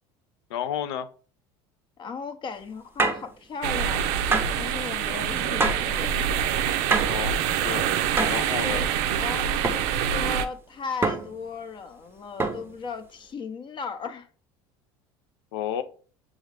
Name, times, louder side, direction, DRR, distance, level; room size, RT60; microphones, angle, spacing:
voice 1, 0.5-1.1 5.1-5.3 7.0-7.4 7.6-7.9 8.3-8.8 15.5-15.8, left 10 dB, 80° left, 0.5 m, -31 dB
voice 2, 2.0-4.2 4.6-6.3 8.6-8.9 9.1-14.3, left 5 dB, 35° left, 0.6 m, -36 dB
sound 1, 3.0-3.3 4.3-4.6 5.6-5.9 6.9-7.2 8.2-8.5 9.6-9.9 11.0-11.4 12.4-12.7, right 3 dB, 15° right, 0.6 m, -25 dB
sound 2, 3.6-10.5, right 8 dB, 70° right, 0.5 m, -26 dB
6.2 x 2.5 x 3.3 m
hypercardioid pair, 85°, 13 cm